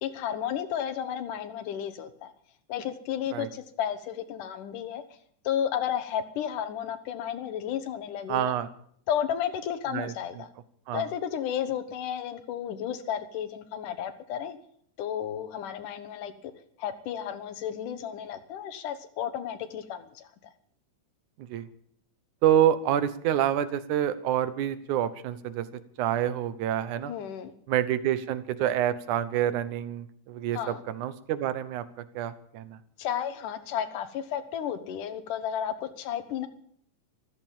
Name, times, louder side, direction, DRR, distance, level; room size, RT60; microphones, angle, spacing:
voice 1, 0.0-2.3 2.7-5.0 5.4-8.5 9.1-10.5 10.9-14.6 15.0-16.3 16.8-20.3 27.1-27.5 30.5-30.8 33.0-36.5, left 9 dB, 85° left, 10 dB, 2.8 m, -32 dB
voice 2, 8.3-8.7 9.9-10.4 10.9-11.0 21.4-21.7 22.4-25.7 26.0-27.1 27.7-31.8 32.2-32.8, right 11 dB, 75° right, 14 dB, 2.5 m, -27 dB
14.5 x 13.5 x 7.2 m, 0.64 s
omnidirectional pair, 3.6 m